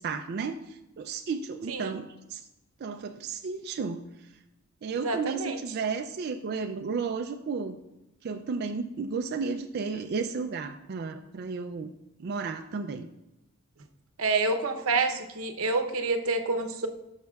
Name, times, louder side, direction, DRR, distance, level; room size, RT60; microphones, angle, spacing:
voice 1, 0.0-2.4 2.8-4.3 4.8-7.8 8.2-11.9 12.2-13.1, right 5 dB, 50° right, 6 dB, 0.4 m, -33 dB
voice 2, 5.0-5.6 14.2-16.9, right 3 dB, 85° right, 6 dB, 0.8 m, -28 dB
11.5 x 6.5 x 2.3 m, 0.95 s
head